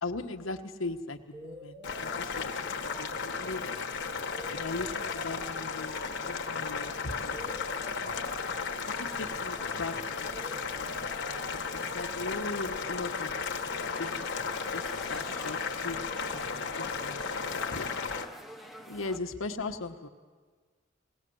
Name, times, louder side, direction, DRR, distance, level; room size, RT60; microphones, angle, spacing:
voice 1, 0.0-2.5 3.0-3.8 4.5-7.4 9.0-13.3 14.0-14.3 14.7-15.6 15.8-17.9 18.9-20.1, left 3 dB, 85° left, 5 dB, 1.2 m, -39 dB
sound 1, 1.3-13.3, right 1 dB, 30° right, 1.2 m, -49 dB
Boiling, 1.8-18.2, left 5 dB, 60° left, 1.4 m, -35 dB
sound 2, 13.7-19.2, equal, ahead, 1.0 m, -47 dB
20.0 x 18.0 x 7.9 m, 1.5 s
head